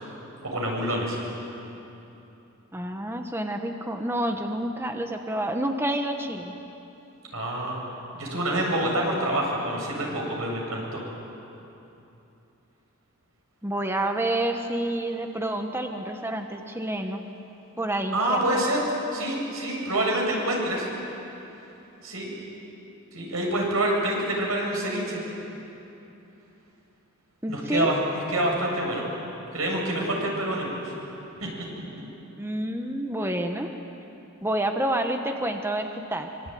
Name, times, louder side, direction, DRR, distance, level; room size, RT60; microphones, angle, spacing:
voice 1, 0.4-1.2 7.3-7.8 8.1-11.0 18.1-18.8 19.1-20.9 22.0-22.3 23.1-25.2 27.5-29.1 29.5-30.9 31.4-31.5, right 1 dB, 90° right, -1 dB, 7.7 m, -27 dB
voice 2, 2.7-6.6 13.6-17.2 17.8-18.6 27.4-27.9 32.4-33.7 34.4-36.3, right 1 dB, 10° right, 4 dB, 1.2 m, -28 dB
25.0 x 24.5 x 9.4 m, 3.0 s
head